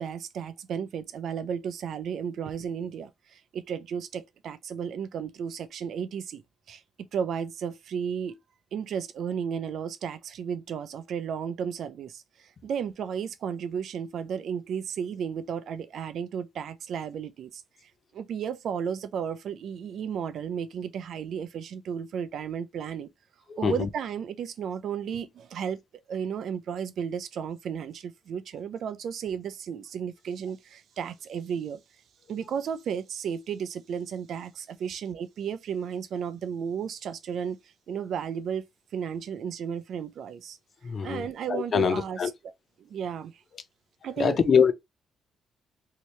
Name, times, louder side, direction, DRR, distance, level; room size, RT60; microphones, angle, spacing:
voice 1, 0.0-6.4 6.7-6.8 7.1-8.4 8.7-23.1 23.6-25.8 26.1-31.8 32.3-37.6 37.9-38.6 38.9-40.6 40.9-42.2 42.8-43.3 44.0-44.4, right 7 dB, 65° right, 0.5 m, -33 dB
voice 2, 23.5-23.9 40.8-42.3 44.2-44.7, left 6 dB, 45° left, 0.5 m, -24 dB
2.8 x 2.8 x 3.1 m
cardioid pair, 90°, 0 cm